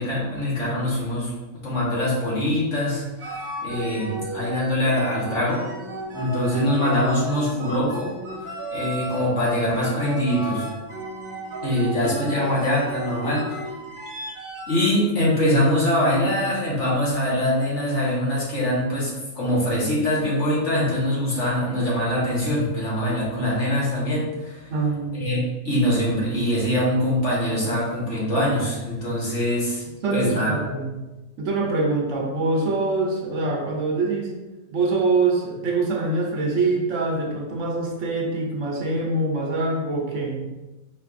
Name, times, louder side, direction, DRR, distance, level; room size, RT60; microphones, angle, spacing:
voice 1, 0.0-1.3 1.6-5.6 6.1-8.1 8.4-10.7 11.6-13.6 14.7-24.7 25.1-29.8 30.1-30.5, left 1 dB, 55° left, -6 dB, 1.6 m, -23 dB
sound 1, 3.2-15.0, right 1 dB, 45° right, 1.0 m, -33 dB
voice 2, 24.7-25.4 30.0-30.9 31.4-34.3 34.7-40.4, right 3 dB, 65° right, 0 dB, 1.0 m, -24 dB
5.0 x 4.0 x 2.5 m, 1.1 s
omnidirectional pair, 1.5 m